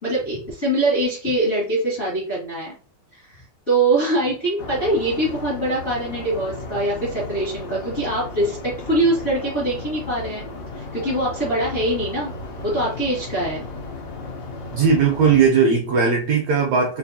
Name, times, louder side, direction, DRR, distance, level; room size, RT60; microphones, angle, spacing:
voice 1, 0.0-2.7 3.1-10.5 10.7-12.3 12.6-13.7, right 1 dB, 55° left, -7 dB, 0.8 m, -23 dB
sound 1, 4.6-15.5, left 3 dB, 85° left, 1.4 m, -35 dB
voice 2, 14.7-17.0, right 5 dB, 80° right, 0 dB, 1.5 m, -18 dB
5.5 x 2.7 x 2.7 m, 0.39 s
omnidirectional pair, 4.2 m